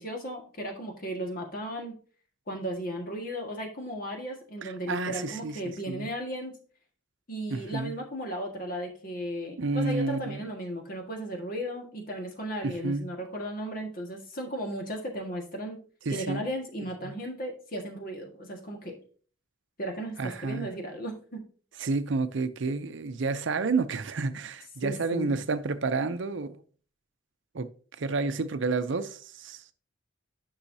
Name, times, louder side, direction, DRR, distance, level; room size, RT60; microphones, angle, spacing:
voice 1, 0.0-1.9 2.5-6.5 7.3-15.8 16.1-19.0 19.8-21.4 24.8-25.4, equal, 45° left, 1.6 m, -35 dB
voice 2, 4.6-5.6 5.9-6.1 7.5-7.9 9.6-10.4 12.6-13.1 16.1-16.4 17.0-17.1 20.2-20.7 21.8-26.6 27.5-27.7 28.0-29.7, right 3 dB, 65° right, 0.5 m, -30 dB
10.0 x 5.6 x 2.7 m
head